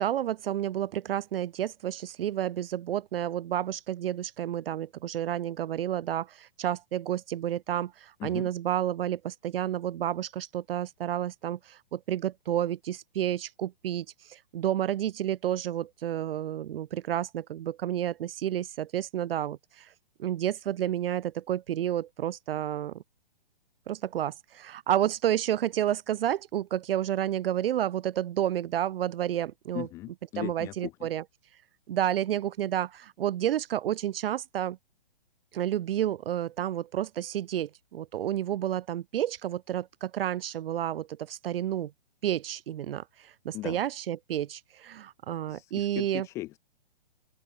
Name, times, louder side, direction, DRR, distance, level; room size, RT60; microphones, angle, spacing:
voice 1, 0.0-19.9 20.2-23.0 23.9-29.9 30.4-31.2 31.9-34.8 35.5-41.9 42.2-46.3, right 11 dB, 80° right, 0.5 m, -30 dB
voice 2, 29.7-31.1 43.5-43.8 45.5-46.6, left 17 dB, 10° left, 0.5 m, -38 dB
open air
hypercardioid pair, 160°, 29 cm